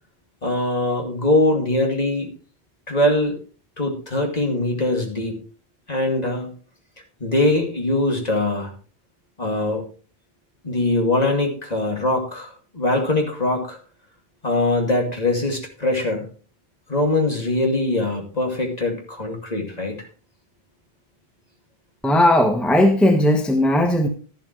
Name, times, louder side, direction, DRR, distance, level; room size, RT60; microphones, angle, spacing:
voice 1, 0.4-2.3 2.9-3.4 3.8-5.3 5.9-6.5 7.2-8.7 9.4-9.9 10.6-13.8 14.4-16.3 16.9-20.0, left 2 dB, 40° left, 1 dB, 2.6 m, -22 dB
voice 2, 22.0-24.1, left 1 dB, ahead, 5 dB, 1.1 m, -17 dB
12.5 x 11.5 x 3.2 m, 0.38 s
omnidirectional pair, 1.1 m